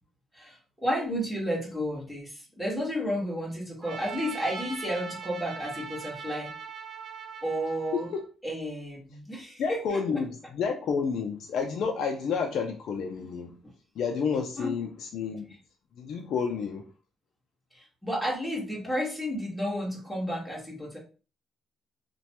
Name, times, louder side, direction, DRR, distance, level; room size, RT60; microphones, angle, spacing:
voice 1, 0.3-6.5 7.4-8.1 8.4-10.2 14.6-14.7 17.7-21.0, equal, ahead, 1.5 m, -32 dB
Trumpet, 3.8-8.2, right 5 dB, 50° right, 0.6 m, -40 dB
voice 2, 9.6-13.6 14.0-15.5 16.0-16.9, left 6 dB, 70° left, 0.4 m, -30 dB
3.0 x 2.2 x 2.9 m
cardioid pair, 90°, 0 cm